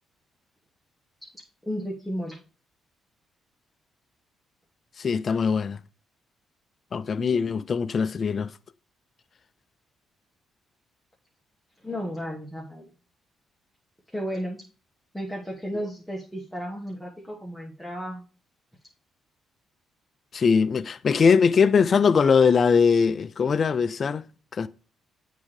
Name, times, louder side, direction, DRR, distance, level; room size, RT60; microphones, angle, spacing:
voice 1, 1.7-2.4 7.2-7.4 11.8-12.9 14.1-14.6 15.1-18.2, equal, ahead, 1.1 m, -33 dB
voice 2, 5.0-5.8 6.9-8.5 20.3-24.2 24.5-24.7, left 6 dB, 45° left, 0.3 m, -21 dB
8.2 x 3.7 x 3.2 m
cardioid pair, 90°, 0 cm